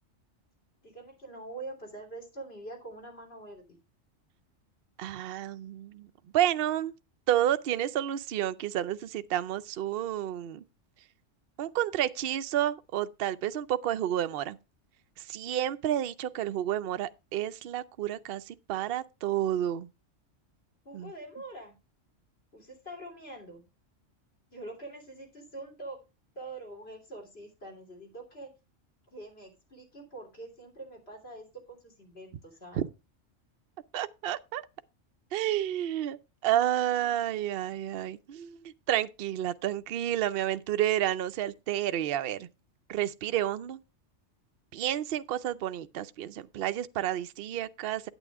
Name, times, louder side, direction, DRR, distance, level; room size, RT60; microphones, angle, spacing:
voice 1, 0.8-3.8 20.8-21.8 22.5-23.6 24.5-26.0 26.3-28.5 29.1-32.8, right 2 dB, 50° left, 3.4 m, -44 dB
voice 2, 5.0-6.1 6.3-6.9 7.3-10.6 11.6-14.6 15.2-19.9 20.9-21.1 32.8-32.9 33.9-34.6 35.3-36.2 36.4-38.6 38.9-42.5 42.9-43.8 44.7-48.1, right 12 dB, 60° right, 0.7 m, -30 dB
9.1 x 9.0 x 3.5 m
omnidirectional pair, 1.3 m